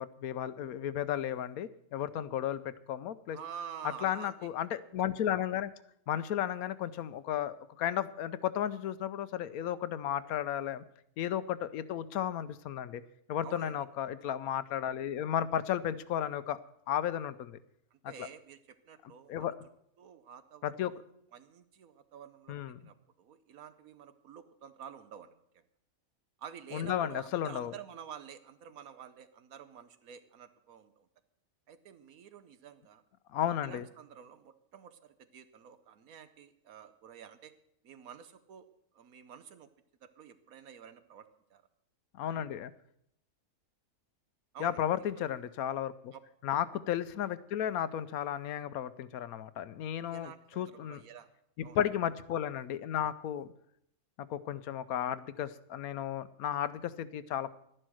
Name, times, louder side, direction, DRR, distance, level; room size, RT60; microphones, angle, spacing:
voice 1, 0.0-3.4 4.0-5.7 6.1-10.8 11.2-13.0 13.3-16.6 16.9-17.6 18.2-18.3 19.3-19.5 20.6-20.9 22.5-22.8 26.7-27.7 33.3-33.9 42.2-42.7 44.6-46.1 46.4-51.0 51.6-53.5 54.3-57.6, left 10 dB, 80° left, 15 dB, 1.1 m, -34 dB
voice 2, 3.3-4.5 13.4-13.8 17.9-18.6 18.8-19.5 20.0-20.9 21.3-25.6 26.4-31.1 31.7-33.0 33.6-37.5 37.8-38.7 38.9-39.7 40.0-41.6 44.5-44.8 46.1-46.2 50.1-51.3 51.6-51.8, right 8 dB, 75° right, 11 dB, 1.3 m, -49 dB
11.5 x 11.0 x 6.3 m, 0.72 s
omnidirectional pair, 1.5 m